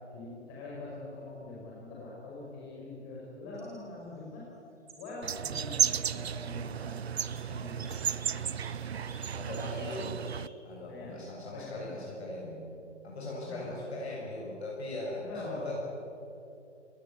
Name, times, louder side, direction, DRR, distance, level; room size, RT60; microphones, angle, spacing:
voice 1, 0.1-4.5 5.0-7.0 7.5-7.9 10.9-11.2 11.5-12.0 13.4-13.7 15.2-15.7, left 2 dB, 25° left, -5 dB, 5.1 m, -43 dB
sound 1, 3.5-3.8 4.9-5.1 6.0-6.2 7.2-7.4 7.7-9.2 9.5-9.9 10.2-10.5, right 4 dB, 10° right, 2.9 m, -52 dB
sound 2, 5.2-10.5, right 8 dB, 60° right, 0.8 m, -33 dB
voice 2, 9.4-10.1 10.6-12.6 13.0-15.8, left 2 dB, 60° left, -4 dB, 7.4 m, -39 dB
28.5 x 18.5 x 8.2 m, 2.9 s
figure-of-eight pair, 140°, 36 cm